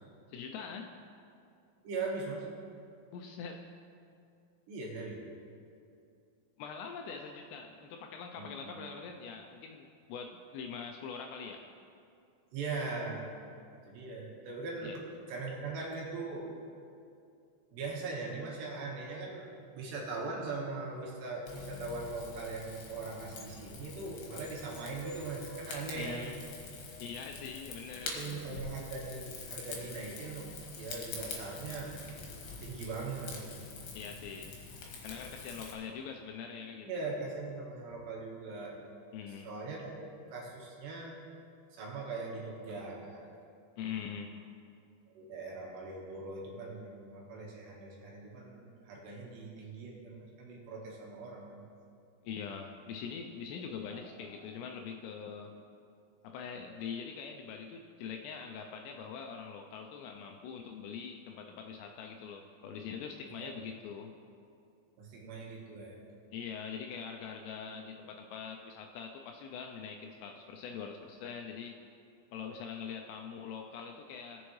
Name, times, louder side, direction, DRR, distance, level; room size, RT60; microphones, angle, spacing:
voice 1, 0.3-0.9 3.1-3.7 6.6-11.6 14.8-15.0 26.0-26.4 27.0-28.6 33.9-34.6 35.0-36.9 39.1-39.5 43.8-44.3 52.2-55.5 56.2-64.1 66.3-71.8 72.3-74.5, left 6 dB, 85° left, 3 dB, 2.5 m, -43 dB
voice 2, 1.8-2.5 4.7-5.2 8.3-8.6 12.5-13.3 13.9-15.0 15.3-16.5 17.7-26.3 28.0-30.5 30.7-31.9 32.6-33.4 36.8-38.8 39.4-41.2 41.7-43.3 45.1-51.6 53.8-54.3 63.4-63.6 65.0-66.2, right 3 dB, 70° right, -3 dB, 3.4 m, -40 dB
Rain / Fire, 21.5-35.7, left 4 dB, 65° left, 3.1 m, -45 dB
18.5 x 7.1 x 3.1 m, 2.5 s
omnidirectional pair, 5.3 m